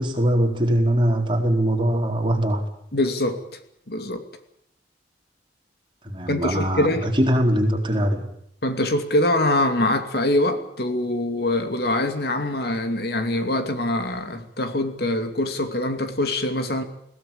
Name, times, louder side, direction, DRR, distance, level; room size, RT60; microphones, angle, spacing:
voice 1, 0.0-2.6 6.0-8.3, right 1 dB, 30° right, 2 dB, 4.4 m, -21 dB
voice 2, 2.9-3.4 3.9-4.2 6.3-7.1 8.6-16.8, left 1 dB, 60° left, 7 dB, 2.6 m, -24 dB
21.5 x 17.0 x 8.7 m, 0.72 s
head